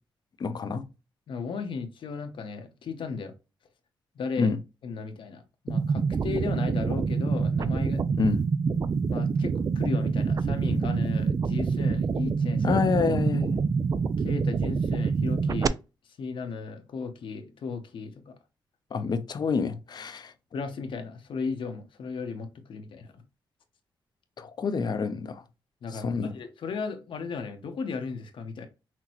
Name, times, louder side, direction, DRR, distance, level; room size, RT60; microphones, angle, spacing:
voice 1, 0.4-0.9 4.4-4.6 8.2-8.4 12.6-13.6 18.9-20.3 24.4-25.4 25.9-26.4, left 5 dB, 55° left, 0.6 m, -27 dB
voice 2, 1.3-3.3 4.1-4.5 4.8-8.1 9.1-12.8 14.2-15.8 16.0-18.4 20.5-23.2 25.8-28.7, left 5 dB, 75° left, 0.9 m, -35 dB
sound 1, 5.7-15.7, right 5 dB, 45° right, 0.3 m, -26 dB
5.9 x 2.2 x 3.0 m
cardioid pair, 85°, 9 cm